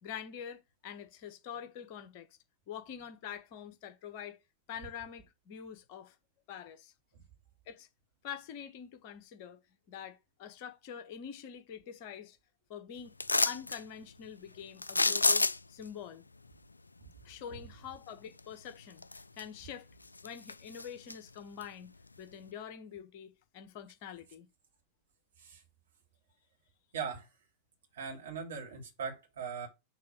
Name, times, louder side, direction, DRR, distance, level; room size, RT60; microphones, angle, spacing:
voice 1, 0.0-2.3 2.7-4.4 4.7-6.1 6.5-6.9 7.7-7.9 8.2-9.6 9.9-12.4 12.7-13.2 13.4-16.2 17.2-19.9 20.2-21.9 22.2-24.5, left 8 dB, 45° left, 1.3 m, -45 dB
sound 1, 13.2-13.8 14.8-15.8 18.4-18.5 19.0-19.7 20.0-21.2 21.6-21.7, left 3 dB, 80° left, 0.3 m, -29 dB
voice 2, 26.9-27.3 27.9-29.7, right 6 dB, 60° right, 2.8 m, -40 dB
6.6 x 3.9 x 6.2 m
figure-of-eight pair, 90°, 0 cm